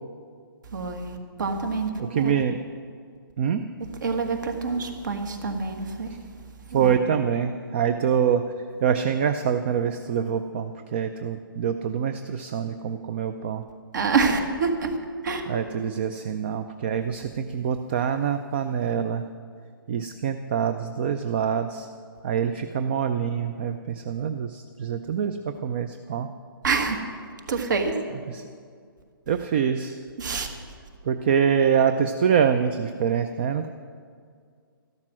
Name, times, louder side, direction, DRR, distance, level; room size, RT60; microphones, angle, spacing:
voice 1, 0.7-2.3 3.8-6.2 6.7-7.0 13.9-15.0 15.2-15.4 26.6-27.0 27.5-27.9 30.2-30.5, right 4 dB, 55° right, 6 dB, 1.7 m, -26 dB
voice 2, 2.0-2.6 3.4-3.6 6.7-8.4 8.8-13.6 15.5-19.2 19.9-21.9 22.2-25.4 25.6-26.3 28.3-28.4 29.3-30.0 31.1-33.7, right 7 dB, 30° right, 9 dB, 0.4 m, -25 dB
13.5 x 12.0 x 6.1 m, 2.1 s
hypercardioid pair, 165°, 12 cm